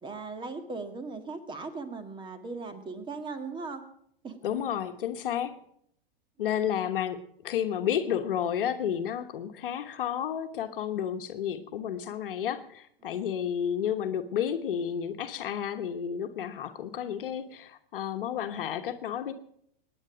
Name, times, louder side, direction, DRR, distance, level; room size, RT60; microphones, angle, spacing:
voice 1, 0.0-3.8 4.2-4.4 13.0-13.3, right 4 dB, 15° right, 7 dB, 1.9 m, -38 dB
voice 2, 4.4-5.6 6.4-7.2 7.4-19.3, left 9 dB, 65° left, 7 dB, 1.2 m, -31 dB
20.5 x 9.9 x 5.0 m, 0.69 s
hypercardioid pair, 115°, 29 cm